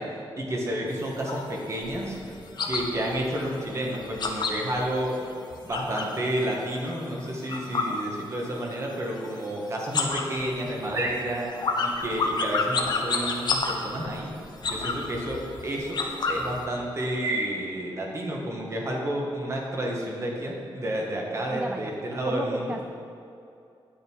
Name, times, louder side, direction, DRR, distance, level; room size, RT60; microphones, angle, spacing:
voice 1, 0.0-2.2 2.7-5.3 5.6-11.5 11.8-14.3 14.6-16.0 16.3-22.7, right 1 dB, 30° right, -1 dB, 1.6 m, -30 dB
sound 1, 0.9-6.2 6.5-8.7 9.0-9.5 9.8-16.6, left 4 dB, 50° left, 1.0 m, -30 dB
voice 2, 21.5-22.8, right 2 dB, 15° right, 5 dB, 0.3 m, -34 dB
9.3 x 9.3 x 4.7 m, 2.6 s
wide cardioid pair, 160°, 9 cm